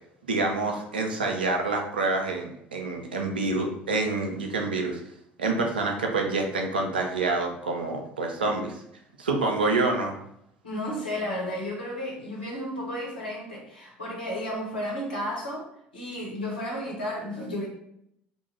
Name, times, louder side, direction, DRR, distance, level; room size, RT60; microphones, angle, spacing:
voice 1, 0.3-5.0 5.4-8.8 9.2-10.1, right 3 dB, 75° right, 2 dB, 0.4 m, -27 dB
voice 2, 10.6-15.7 15.9-17.7, left 1 dB, 75° left, -4 dB, 0.8 m, -33 dB
2.5 x 2.2 x 3.0 m, 0.75 s
figure-of-eight pair, 60°, 5 cm